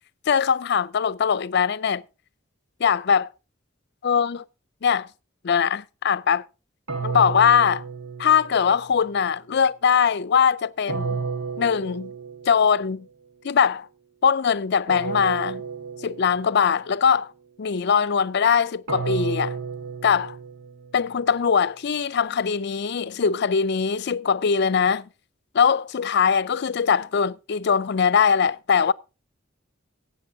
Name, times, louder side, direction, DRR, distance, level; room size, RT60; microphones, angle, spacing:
voice 1, 0.3-2.0 2.8-3.3 4.0-4.4 4.8-5.1 5.4-6.4 7.0-7.8 8.2-11.2 11.6-12.1 12.5-13.1 13.4-13.9 14.2-15.6 16.0-17.3 17.6-19.6 20.0-20.4 20.9-25.1 25.5-28.9, left 6 dB, 60° left, 0.5 m, -21 dB
sound 1, 6.9-8.9 10.9-12.7 14.9-16.7 18.9-21.1, right 5 dB, 85° right, 1.6 m, -32 dB
19.0 x 8.1 x 2.7 m
head